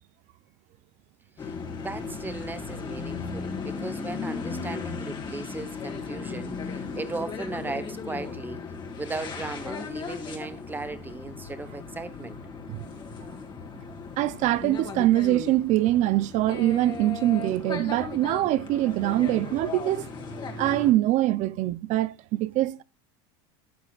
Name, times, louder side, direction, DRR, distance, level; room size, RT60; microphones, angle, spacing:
sound 1, 1.4-20.9, left 5 dB, 25° left, 2.0 m, -36 dB
voice 1, 1.8-8.6 9.0-12.4, right 3 dB, 10° right, 1.0 m, -37 dB
voice 2, 14.2-20.1 20.6-22.8, right 15 dB, 50° right, 0.5 m, -24 dB
13.0 x 8.2 x 2.4 m
supercardioid pair, 130°, 17 cm